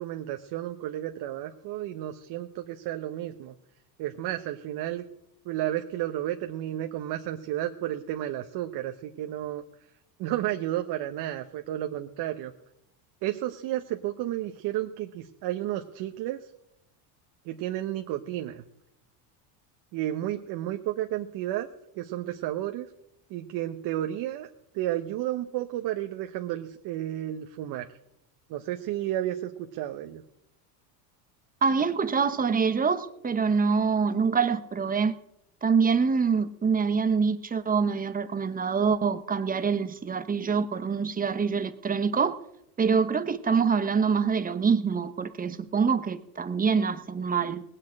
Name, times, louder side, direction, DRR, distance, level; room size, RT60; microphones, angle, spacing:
voice 1, 0.0-3.5 4.0-5.0 5.4-9.6 10.2-12.5 13.2-16.5 17.4-18.6 19.9-21.7 21.9-22.9 23.3-24.5 24.7-27.9 28.5-30.2, right 13 dB, 55° right, 1.0 m, -32 dB
voice 2, 31.6-35.1 35.6-42.4 42.8-47.6, right 5 dB, 20° right, 1.0 m, -25 dB
18.5 x 6.6 x 8.7 m
supercardioid pair, 115°, 46 cm